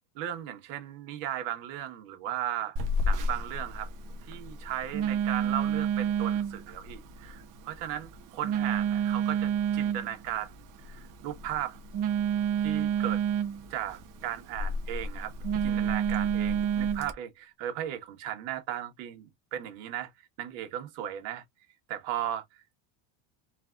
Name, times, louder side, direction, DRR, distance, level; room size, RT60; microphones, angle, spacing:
voice 1, 0.1-2.7 3.0-3.9 4.3-10.5 10.8-11.8 12.6-13.2 13.7-15.3 15.6-16.5 16.9-20.1 20.4-21.4 21.9-22.6, right 11 dB, 80° right, 1.6 m, -36 dB
Telephone, 2.8-17.1, right 6 dB, 45° right, 0.7 m, -30 dB
3.4 x 3.3 x 2.4 m
cardioid pair, 155°, 45 cm